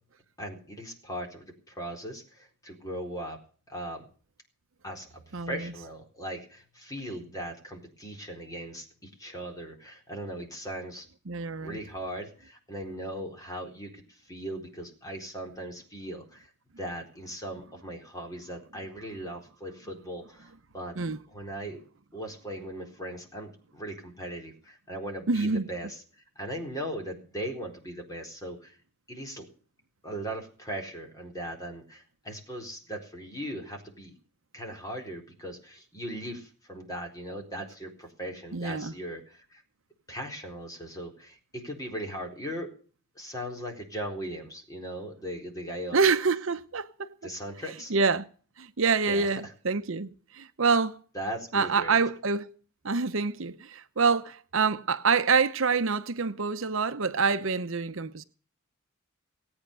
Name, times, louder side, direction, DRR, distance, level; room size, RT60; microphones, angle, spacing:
voice 1, 0.4-3.4 3.7-4.1 4.8-11.1 11.6-21.0 21.3-21.8 22.1-28.8 29.1-29.5 30.0-34.1 34.5-39.6 40.1-42.7 43.2-46.0 47.2-47.9 49.1-49.5 51.1-52.0, right 1 dB, 15° left, 4.1 m, -39 dB
voice 2, 5.3-5.7 11.3-11.8 21.0-21.2 25.3-25.7 38.5-38.9 45.9-47.1 47.9-48.3 48.6-51.0 51.5-52.5 52.8-58.2, right 4 dB, 60° right, 0.8 m, -26 dB
19.0 x 8.8 x 6.8 m
head